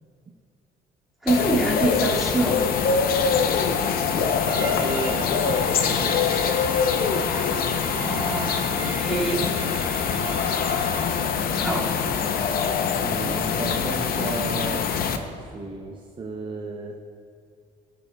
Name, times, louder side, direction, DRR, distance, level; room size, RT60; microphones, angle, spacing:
voice 1, 1.2-2.7 8.0-9.5 11.5-11.9, right 2 dB, ahead, -6 dB, 2.1 m, -25 dB
sound 1, 1.3-15.2, left 6 dB, 60° left, 0.7 m, -24 dB
voice 2, 4.1-6.5 13.0-17.0, right 3 dB, 30° right, 1 dB, 0.6 m, -34 dB
Bowed string instrument, 4.4-11.2, right 3 dB, 50° right, 2.1 m, -37 dB
19.0 x 6.9 x 2.3 m, 2.3 s
cardioid pair, 110°, 17 cm